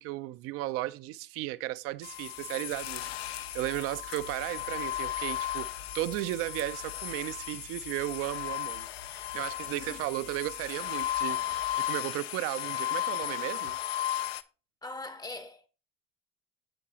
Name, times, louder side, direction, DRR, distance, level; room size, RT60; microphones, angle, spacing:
voice 1, 0.0-13.8, right 16 dB, 50° right, 0.4 m, -35 dB
sound 1, 1.9-11.9, left 6 dB, 65° left, 1.1 m, -52 dB
sound 2, 2.0-14.4, left 12 dB, 85° left, 0.5 m, -35 dB
voice 2, 14.8-15.7, left 2 dB, 15° left, 0.6 m, -41 dB
8.6 x 6.6 x 2.8 m
hypercardioid pair, 80°, 30 cm